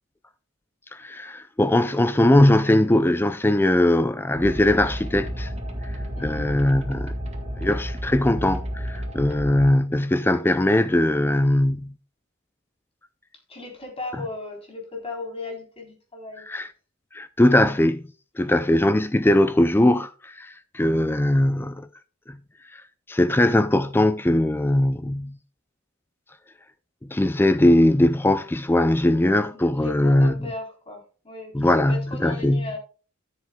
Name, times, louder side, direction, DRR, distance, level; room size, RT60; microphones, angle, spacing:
voice 1, 0.9-5.5 6.2-7.1 7.6-11.9 16.5-16.7 17.1-18.0 18.4-21.9 22.3-22.4 22.7-22.8 23.1-25.4 27.1-30.4 31.5-32.7, left 1 dB, 10° left, 0.4 m, -20 dB
sound 1, 4.3-9.7, equal, 30° right, 1.9 m, -31 dB
voice 2, 6.2-6.5 13.5-16.5 29.5-32.8, left 3 dB, 25° left, 3.8 m, -36 dB
13.5 x 7.6 x 2.3 m
head